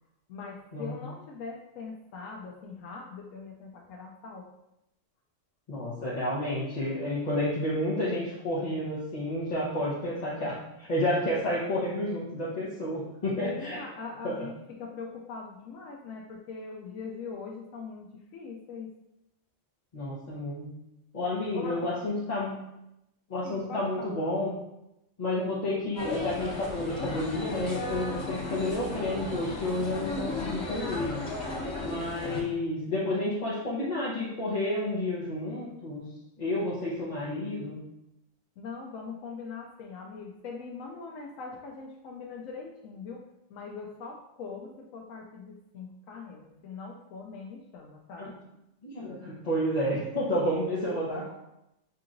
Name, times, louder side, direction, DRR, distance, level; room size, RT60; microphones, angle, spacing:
voice 1, 0.3-4.5 13.4-18.9 21.5-21.9 23.4-24.3 38.6-43.2 43.5-48.3, left 4 dB, 85° left, -1 dB, 1.0 m, -41 dB
voice 2, 5.7-13.8 14.2-14.4 19.9-20.7 21.1-22.6 23.3-24.5 25.2-31.2 31.8-36.0 36.4-37.8 48.2-48.3 48.8-51.3, left 1 dB, 35° left, -8 dB, 0.9 m, -30 dB
sound 1, 26.0-32.4, left 2 dB, 60° left, 1.3 m, -35 dB
6.7 x 2.8 x 2.5 m, 0.86 s
omnidirectional pair, 1.3 m